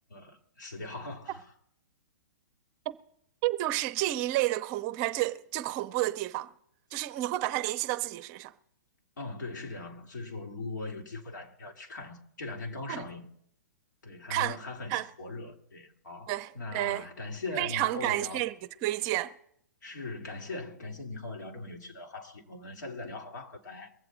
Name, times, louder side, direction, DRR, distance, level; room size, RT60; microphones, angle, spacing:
voice 1, 0.1-1.5 9.2-13.3 14.0-18.5 19.8-23.9, left 3 dB, 80° left, 2.7 m, -40 dB
voice 2, 3.4-6.5 6.9-8.5 12.9-13.0 14.3-14.6 14.9-15.1 16.3-17.0 17.6-18.5 18.8-19.3, right 16 dB, 35° right, 0.7 m, -30 dB
22.5 x 7.7 x 4.0 m
hypercardioid pair, 130°, 10 cm